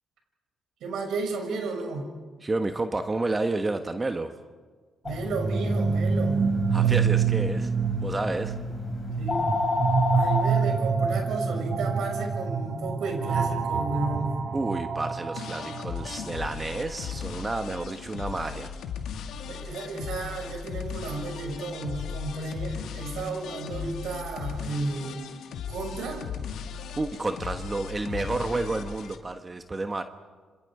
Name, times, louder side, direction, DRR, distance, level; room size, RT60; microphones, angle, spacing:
voice 1, 0.8-2.1 5.0-6.5 6.8-7.1 9.2-9.5 10.1-14.4 19.5-25.3 25.7-26.2, right 3 dB, 75° right, 2 dB, 6.5 m, -33 dB
voice 2, 2.4-4.3 6.7-7.7 8.0-8.5 14.5-18.7 27.0-30.0, right 2 dB, 25° right, 7 dB, 1.3 m, -30 dB
sound 1, 5.1-10.5, left 3 dB, 30° left, 6.0 m, -31 dB
sound 2, 5.2-17.0, right 6 dB, 55° right, 3.5 m, -27 dB
sound 3, 15.4-29.2, left 7 dB, 75° left, 2.1 m, -37 dB
29.5 x 25.5 x 5.0 m, 1.5 s
cardioid pair, 90°, 0 cm